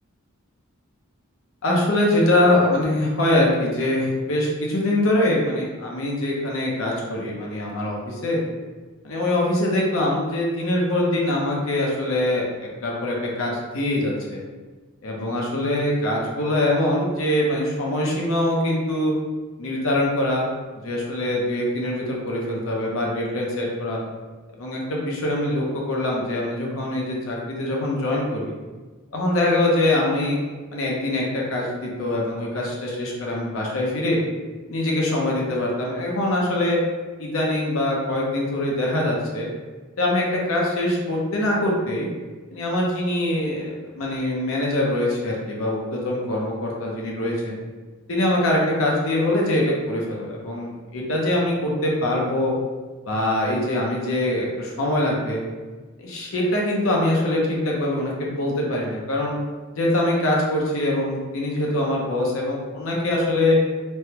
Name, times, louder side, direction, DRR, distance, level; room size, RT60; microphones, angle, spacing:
voice 1, 1.6-8.4 9.0-14.4 15.0-19.1 19.6-20.5 20.8-24.0 24.6-28.5 29.1-30.4 30.7-34.2 34.7-36.8 37.2-39.5 40.0-42.1 42.5-47.6 48.1-52.5 53.0-55.4 56.0-59.4 59.7-63.6, left 1 dB, 70° left, -3 dB, 0.7 m, -23 dB
3.2 x 2.2 x 2.9 m, 1.3 s
head